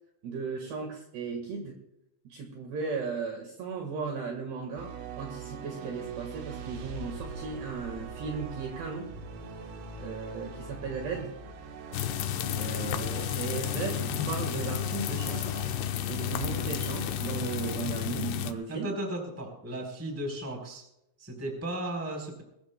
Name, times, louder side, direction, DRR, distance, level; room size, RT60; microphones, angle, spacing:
voice 1, 0.2-1.8 2.3-9.1 10.0-11.3 12.6-15.6 16.1-18.9, right 5 dB, 65° right, 2 dB, 3.4 m, -36 dB
sound 1, 4.8-17.9, right 5 dB, 85° right, 4.6 m, -42 dB
sound 2, 11.9-18.5, left 11 dB, 90° left, 2.3 m, -32 dB
voice 2, 18.7-20.8 21.2-22.4, right 1 dB, 5° right, 1 dB, 2.9 m, -35 dB
22.0 x 20.0 x 2.3 m, 0.83 s
omnidirectional pair, 5.8 m